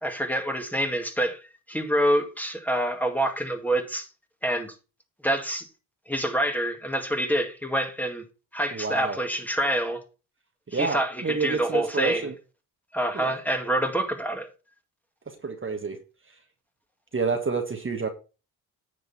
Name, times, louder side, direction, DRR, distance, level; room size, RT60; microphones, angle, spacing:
voice 1, 0.0-1.4 1.7-4.1 4.4-4.7 5.2-5.7 6.1-8.2 8.5-10.0 10.7-12.3 12.9-14.5, right 1 dB, 5° left, 2.0 m, -26 dB
voice 2, 8.7-9.2 10.7-12.3 13.1-13.4 15.4-16.0 17.1-18.1, right 4 dB, 30° right, 1.5 m, -28 dB
9.9 x 6.6 x 4.2 m
cardioid pair, 75°, 43 cm